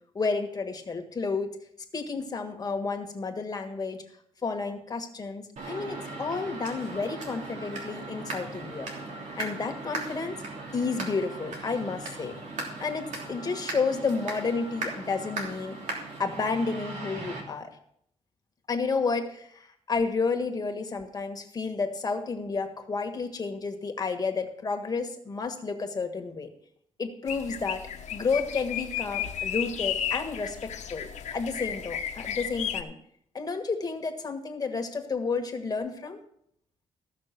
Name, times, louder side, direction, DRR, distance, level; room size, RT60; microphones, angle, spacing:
voice 1, 0.2-1.5 1.9-4.0 4.4-8.9 9.4-10.4 10.7-12.3 12.8-15.8 16.2-17.7 18.7-26.5 27.0-27.8 28.1-33.0 33.3-36.2, left 4 dB, 30° left, 5 dB, 1.7 m, -31 dB
sound 1, 5.6-17.4, right 3 dB, 80° right, 3.1 m, -38 dB
sound 2, 27.3-32.8, left 9 dB, 75° left, 1.0 m, -33 dB
15.0 x 6.2 x 6.0 m, 0.69 s
cardioid pair, 125°, 12 cm